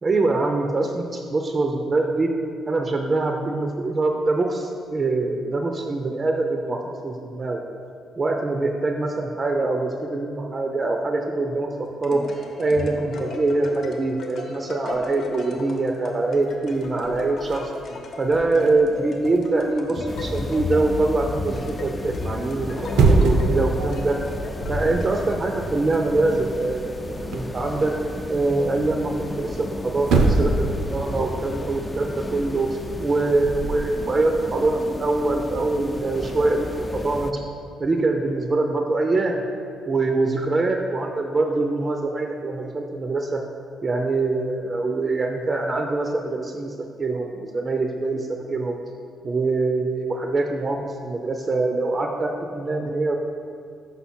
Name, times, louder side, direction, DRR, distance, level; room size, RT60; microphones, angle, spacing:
voice 1, 0.0-2.3 2.7-7.6 8.2-12.2 12.6-17.7 18.2-24.2 24.7-27.9 28.3-37.4 37.8-39.4 39.8-43.4 43.8-48.8 49.2-53.2, right 2 dB, 35° right, 3 dB, 0.5 m, -24 dB
sound 1, 11.7-25.6, left 2 dB, 65° left, 0.9 m, -35 dB
sound 2, 14.9-15.3 15.9-16.0 16.2-20.5 22.6-23.6 24.0-24.2 24.6-25.1 25.4-27.6 29.6-29.7 30.0-30.7 31.0-33.9, right 3 dB, 80° right, 0.6 m, -25 dB
sound 3, 20.1-37.3, left 2 dB, 20° left, 0.4 m, -34 dB
5.6 x 5.4 x 4.3 m, 2.4 s
cardioid pair, 90°, 0 cm